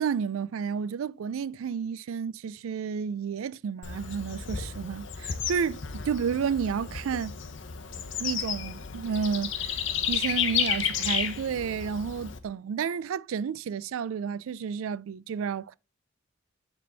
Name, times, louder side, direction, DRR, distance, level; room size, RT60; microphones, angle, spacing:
voice 1, 0.0-7.4 8.2-9.8 10.1-15.7, right 6 dB, 75° right, 0.3 m, -31 dB
Bird / Insect, 3.8-12.4, left 8 dB, 60° left, 0.9 m, -32 dB
9.3 x 3.6 x 3.9 m
head